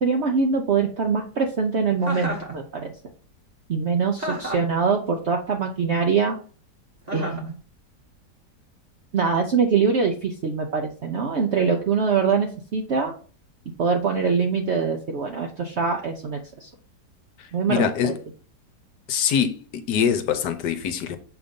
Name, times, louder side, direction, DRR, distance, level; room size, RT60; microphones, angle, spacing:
voice 1, 0.0-2.9 3.7-6.4 7.1-7.6 9.1-13.1 13.8-16.7 17.5-18.1, right 5 dB, 65° right, 0.6 m, -23 dB
Chuckle chortle, 2.0-2.5 4.2-4.7 7.1-7.5, equal, 25° right, 1.2 m, -31 dB
voice 2, 17.4-18.1 19.1-21.2, left 8 dB, 75° left, 1.3 m, -24 dB
7.0 x 2.6 x 5.2 m
omnidirectional pair, 1.9 m